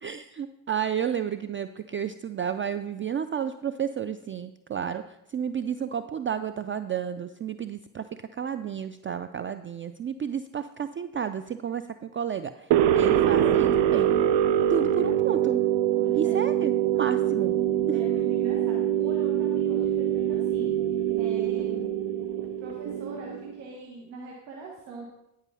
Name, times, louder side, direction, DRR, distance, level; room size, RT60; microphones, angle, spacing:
voice 1, 0.0-8.1 8.3-14.1 14.7-15.6 16.1-17.6 17.9-18.0, right 8 dB, 25° right, 12 dB, 0.4 m, -31 dB
sound 1, 12.7-23.6, right 10 dB, 60° right, 0.7 m, -24 dB
voice 2, 15.9-16.4 17.9-20.7 21.1-21.9 22.6-25.0, right 2 dB, 90° right, -2 dB, 1.2 m, -43 dB
11.0 x 4.9 x 5.6 m, 0.86 s
hypercardioid pair, 50°, 49 cm